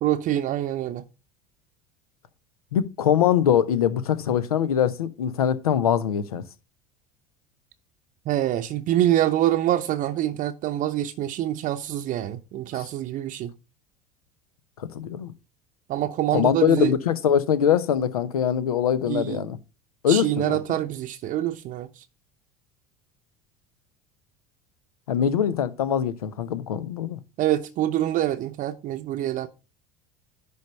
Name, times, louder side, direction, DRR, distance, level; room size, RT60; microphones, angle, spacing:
voice 1, 0.0-1.0 8.3-13.5 15.9-16.9 19.1-19.5 20.1-22.0 27.4-29.5, right 12 dB, 45° right, 0.7 m, -25 dB
voice 2, 2.7-6.4 14.8-15.3 16.3-19.6 20.0-20.6 25.1-27.2, left 9 dB, 80° left, 0.8 m, -23 dB
10.5 x 3.5 x 5.4 m
hypercardioid pair, 70°, 19 cm